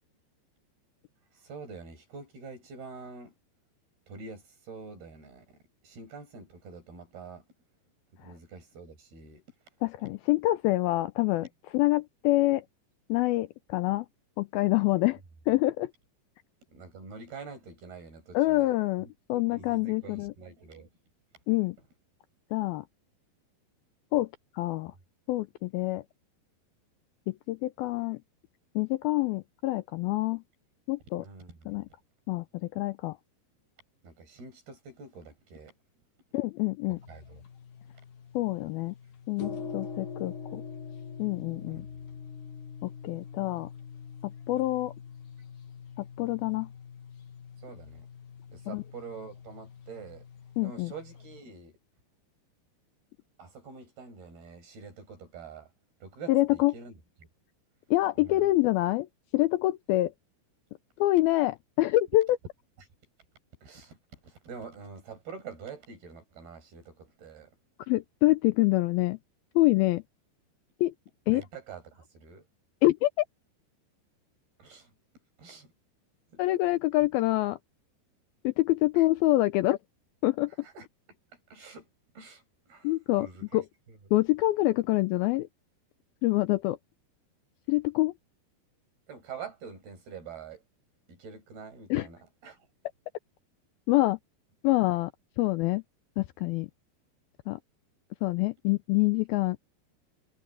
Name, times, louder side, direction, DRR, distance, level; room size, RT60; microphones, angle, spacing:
voice 1, 1.3-3.3 4.1-7.4 8.1-9.4 16.7-18.8 19.0-20.9 31.2-31.7 34.0-35.7 37.1-37.4 41.7-41.8 47.6-48.1 48.5-50.3 50.6-51.7 53.4-55.7 56.0-57.0 58.2-58.5 63.6-67.6 71.3-72.5 74.6-74.9 75.4-75.7 76.3-76.4 79.0-79.1 80.6-80.9 81.5-81.9 82.2-82.9 83.2-83.6 83.9-84.0 89.1-90.6 91.1-92.6, right 5 dB, 65° right, 8.8 m, -46 dB
voice 2, 9.8-11.5 11.7-12.6 13.1-14.1 14.4-15.2 15.5-15.9 18.3-20.3 21.5-21.8 22.5-22.9 24.1-24.9 25.3-26.0 27.3-28.2 28.8-30.4 30.9-31.3 31.7-31.9 32.3-33.2 36.3-37.0 38.3-39.0 39.3-40.6 41.2-41.9 42.8-43.7 44.2-44.9 46.0-46.7 48.7-48.8 50.6-50.9 56.3-56.7 57.9-59.1 59.3-60.1 61.0-62.4 67.9-69.2 69.6-70.0 70.8-70.9 71.3-71.4 72.8-73.3 76.4-77.6 78.4-79.8 80.2-80.5 82.8-83.3 83.5-83.6 84.1-85.5 86.2-86.8 87.7-88.1 91.9-92.1 93.9-94.2 94.6-95.1 95.4-95.8 96.2-96.7 97.5-97.6 98.2-99.6, left 18 dB, 85° left, 2.2 m, -26 dB
sound 1, 36.9-51.4, left 6 dB, 55° left, 3.6 m, -44 dB
omnidirectional pair, 4.9 m